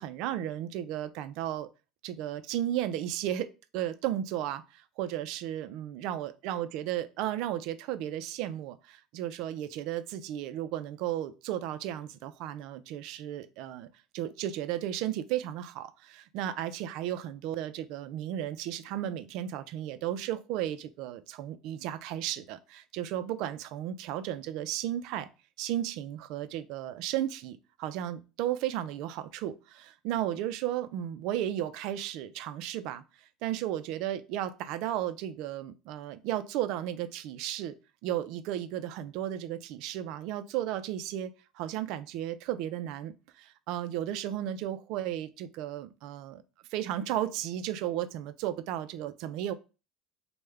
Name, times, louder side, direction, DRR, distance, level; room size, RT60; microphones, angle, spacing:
voice 1, 0.0-1.7 2.0-13.9 14.1-25.3 25.6-33.0 33.4-37.8 38.0-46.4 46.7-49.5, right 12 dB, 65° right, 12 dB, 0.3 m, -34 dB
3.2 x 2.1 x 3.4 m, 0.31 s
cardioid pair, 135°, 0 cm